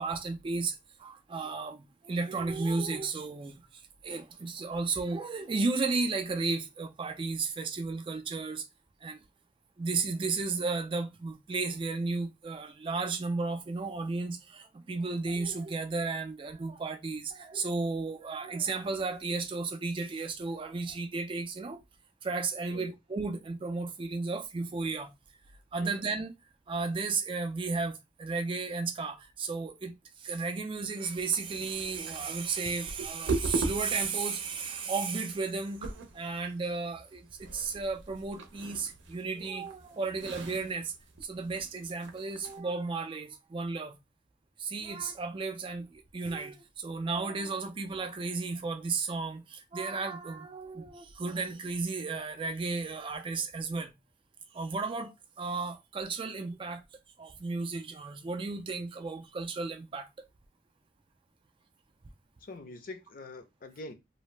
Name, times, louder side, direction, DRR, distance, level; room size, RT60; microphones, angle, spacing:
voice 1, 0.0-8.7 9.0-9.2 9.8-21.8 22.2-25.1 25.7-26.3 26.7-29.9 30.2-40.9 41.2-44.0 44.6-53.9 54.5-56.8 57.2-60.3, right 4 dB, 30° right, 0.3 m, -34 dB
sound 1, 31.3-42.6, right 3 dB, 80° right, 0.6 m, -40 dB
voice 2, 62.4-63.9, left 2 dB, 50° left, 0.5 m, -45 dB
2.6 x 2.1 x 3.1 m
head